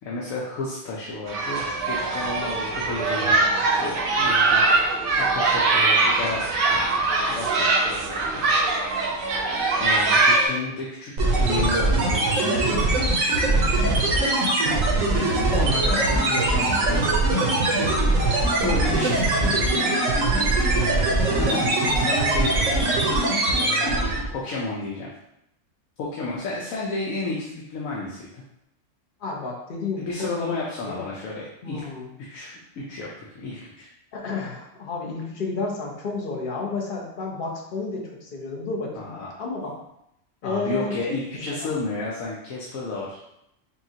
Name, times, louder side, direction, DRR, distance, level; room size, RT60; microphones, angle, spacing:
voice 1, 0.0-6.5 6.7-8.4 8.7-8.9 9.8-14.3 15.1-17.5 17.7-19.9 20.7-25.1 26.0-28.4 30.0-31.8 32.2-33.9 38.9-39.4 40.4-43.2, left 3 dB, 90° left, -4 dB, 1.1 m, -33 dB
sound 1, 1.3-10.5, right 3 dB, 55° right, 0.7 m, -22 dB
sound 2, 11.2-24.3, right 2 dB, 80° right, 1.3 m, -21 dB
voice 2, 29.2-31.1 31.6-32.1 34.1-39.7 40.4-41.2 41.5-41.7, left 3 dB, 45° left, -1 dB, 0.9 m, -31 dB
5.7 x 2.3 x 2.8 m, 0.81 s
omnidirectional pair, 1.4 m